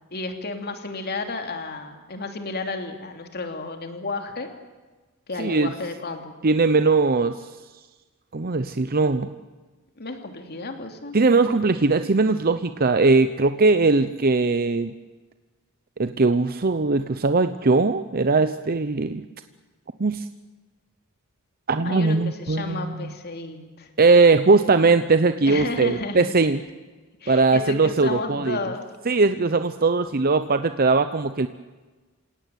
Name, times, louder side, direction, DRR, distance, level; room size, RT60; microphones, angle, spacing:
voice 1, 0.1-4.5 5.3-6.3 10.0-11.2 21.8-23.9 25.5-26.3 27.2-28.8, left 3 dB, 50° left, 5 dB, 2.9 m, -32 dB
voice 2, 5.4-5.7 6.4-7.5 8.3-9.3 11.1-14.9 16.0-19.2 20.0-20.3 21.7-23.1 24.0-26.6 27.3-28.6 29.1-31.5, right 3 dB, 45° right, 10 dB, 0.8 m, -20 dB
28.0 x 17.5 x 9.3 m, 1.3 s
head